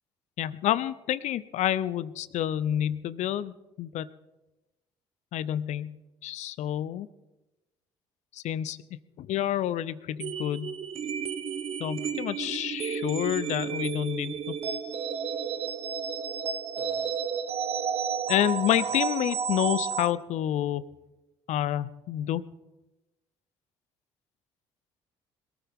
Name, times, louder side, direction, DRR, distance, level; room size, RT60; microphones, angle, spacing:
voice 1, 0.4-4.1 5.3-6.0 6.2-7.1 8.3-8.8 9.2-10.7 11.8-14.5 18.3-20.8 21.5-22.4, left 11 dB, 60° left, 17 dB, 0.7 m, -29 dB
sound 1, 10.2-20.1, right 7 dB, 50° right, 1.0 m, -32 dB
22.0 x 14.0 x 3.7 m, 1.0 s
hypercardioid pair, 55°, 13 cm